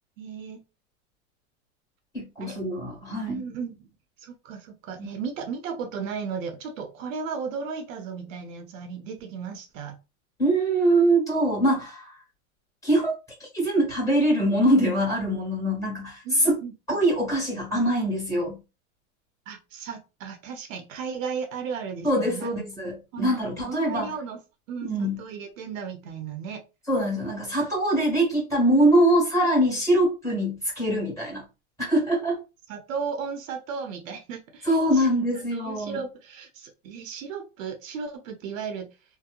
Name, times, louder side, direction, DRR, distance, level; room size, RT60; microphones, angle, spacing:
voice 1, 0.2-0.6 2.4-2.6 3.3-3.9 4.2-10.0 16.2-16.7 19.5-22.5 23.1-24.4 24.7-26.6 32.7-35.1 35.5-38.9, right 6 dB, 70° right, 0.7 m, -35 dB
voice 2, 2.1-3.4 5.0-5.1 10.4-12.1 12.8-13.1 13.5-16.6 16.9-18.6 22.0-24.1 24.8-25.2 26.9-31.4 31.8-32.4 34.6-36.0, right 1 dB, 5° left, 1.4 m, -23 dB
2.8 x 2.1 x 2.4 m
supercardioid pair, 145°, 41 cm